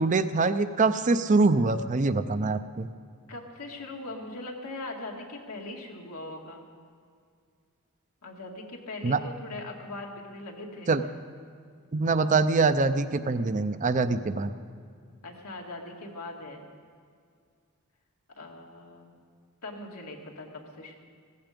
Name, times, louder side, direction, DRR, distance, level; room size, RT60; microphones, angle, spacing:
voice 1, 0.0-2.9 9.0-9.2 10.9-11.0 11.9-14.5, right 3 dB, 35° right, 11 dB, 0.5 m, -24 dB
voice 2, 3.3-6.6 8.2-10.9 15.2-16.6 18.4-19.1 19.6-20.9, left 2 dB, 90° left, 0 dB, 2.2 m, -40 dB
16.0 x 15.0 x 5.2 m, 2.2 s
head